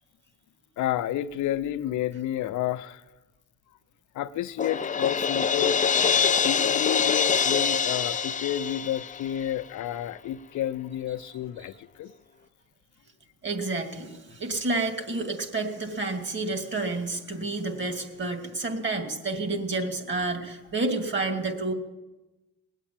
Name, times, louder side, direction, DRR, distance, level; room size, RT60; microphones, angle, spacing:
voice 1, 0.8-3.0 4.1-5.8 6.4-11.7 12.0-12.1, left 11 dB, 75° left, 0.6 m, -30 dB
Crash cymbal, 4.6-9.5, left 6 dB, 25° left, 0.5 m, -25 dB
voice 2, 13.4-21.7, right 2 dB, 40° right, 2.6 m, -30 dB
20.0 x 8.2 x 8.7 m
cardioid pair, 90°, 30 cm